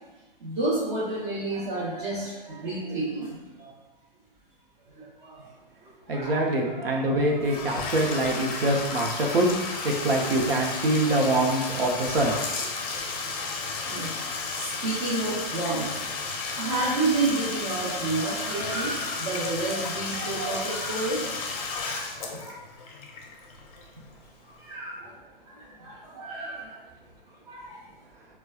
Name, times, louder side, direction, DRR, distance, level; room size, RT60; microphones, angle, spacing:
voice 1, 0.4-3.7 5.0-5.4 6.1-8.1 9.6-10.7 11.0-11.1 13.3-13.5 13.9-14.1 14.6-15.9 16.5-22.6 24.6-25.1 25.6-26.8 27.5-27.8, right 2 dB, 40° right, -9 dB, 1.0 m, -31 dB
voice 2, 6.1-9.5 9.8-12.4, right 1 dB, 75° right, 0 dB, 0.8 m, -24 dB
Bathtub (filling or washing), 7.4-24.2, left 4 dB, 40° left, 0.5 m, -33 dB
4.2 x 2.3 x 2.3 m, 1.2 s
hypercardioid pair, 135°, 30 cm